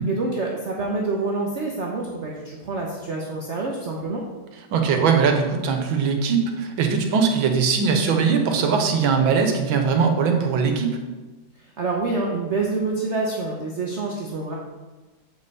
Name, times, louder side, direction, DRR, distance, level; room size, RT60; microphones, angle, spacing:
voice 1, 0.1-4.2 11.6-14.5, right 3 dB, 50° right, -2 dB, 0.8 m, -27 dB
voice 2, 4.7-11.0, right 5 dB, 85° right, 4 dB, 1.7 m, -20 dB
7.7 x 5.4 x 4.1 m, 1.2 s
omnidirectional pair, 2.1 m